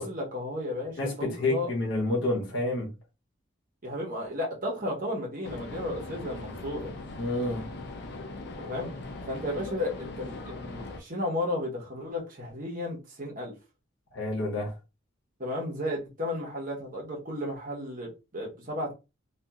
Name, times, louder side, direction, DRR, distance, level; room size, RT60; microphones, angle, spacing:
voice 1, 0.0-1.7 3.8-6.9 8.6-8.9 9.3-13.5 15.4-18.9, left 1 dB, 45° right, 1.0 m, -33 dB
voice 2, 1.0-2.9 7.1-7.7 14.1-14.7, left 2 dB, 70° left, 1.0 m, -29 dB
sound 1, 5.4-11.0, left 2 dB, 55° left, 0.4 m, -40 dB
2.8 x 2.5 x 2.4 m
head